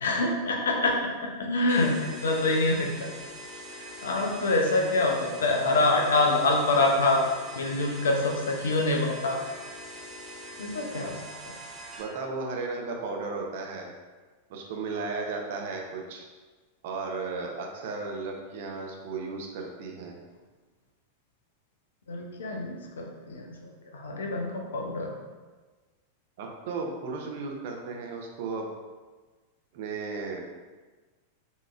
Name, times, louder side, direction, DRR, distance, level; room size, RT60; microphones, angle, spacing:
voice 1, 0.0-1.1 1.4-3.1 4.0-7.2 7.6-9.4 10.6-11.2 22.1-25.1, left 2 dB, 65° left, 1 dB, 0.6 m, -26 dB
sound 1, 1.7-12.0, equal, 15° right, 1.3 m, -43 dB
voice 2, 12.0-13.9 14.5-16.3 16.8-20.2 26.4-28.7 29.7-30.4, right 4 dB, 50° right, 1 dB, 0.7 m, -35 dB
5.3 x 3.0 x 2.5 m, 1.3 s
figure-of-eight pair, 90°, 0 cm